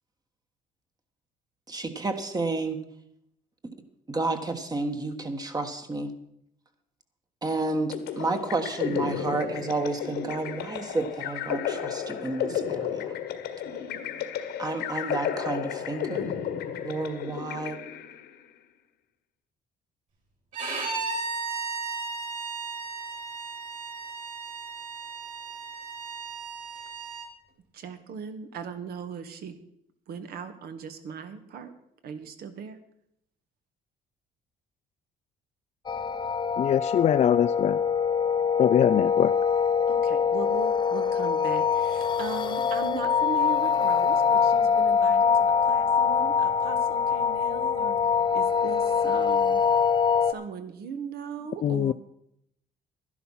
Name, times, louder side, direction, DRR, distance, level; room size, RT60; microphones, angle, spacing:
voice 1, 1.7-2.8 4.1-6.1 7.4-13.1 14.6-16.3 16.8-17.8, right 2 dB, 20° right, 6 dB, 1.4 m, -31 dB
sound 1, 7.9-18.3, left 9 dB, 75° left, 1.6 m, -33 dB
Bowed string instrument, 20.5-27.3, right 4 dB, 50° right, 5.1 m, -35 dB
voice 2, 27.7-29.6 30.1-31.7 32.0-32.8 39.9-48.0 48.3-49.6 50.2-51.9, right 6 dB, 65° right, 9 dB, 1.6 m, -38 dB
sound 2, 35.9-50.3, left 6 dB, 25° left, 0.9 m, -24 dB
voice 3, 36.6-37.8 38.6-39.3 51.6-51.9, left 10 dB, 40° left, 11 dB, 0.4 m, -23 dB
12.0 x 11.0 x 5.6 m, 0.73 s
cardioid pair, 110°, 17 cm